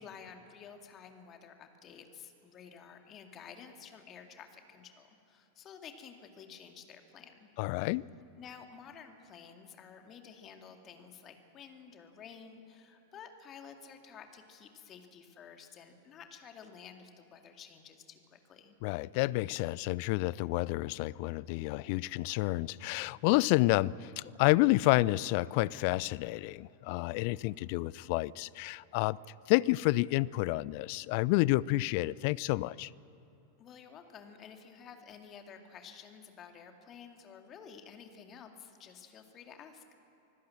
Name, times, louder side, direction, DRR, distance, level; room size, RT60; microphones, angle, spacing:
voice 1, 0.0-7.5 8.3-18.8 33.6-39.8, left 7 dB, 30° left, 2.3 m, -51 dB
voice 2, 7.6-8.0 18.8-29.2 29.5-32.9, left 20 dB, 45° left, 0.4 m, -29 dB
25.0 x 16.0 x 7.8 m
figure-of-eight pair, 90°, 0 cm